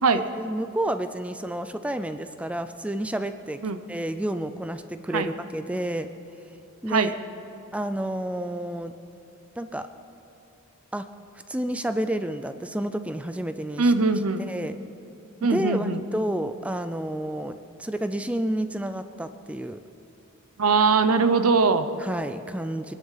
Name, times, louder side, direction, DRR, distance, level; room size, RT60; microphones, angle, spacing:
voice 1, 0.1-3.6 3.9-6.1 6.8-7.1 7.7-8.9 9.6-9.9 10.9-11.1 11.5-13.9 14.4-14.8 15.4-19.8 22.0-22.9, right 1 dB, 5° right, 9 dB, 0.4 m, -30 dB
voice 2, 13.8-14.5 15.4-16.0 20.6-21.9, right 4 dB, 85° right, 10 dB, 0.8 m, -21 dB
23.0 x 11.0 x 5.7 m, 2.8 s
head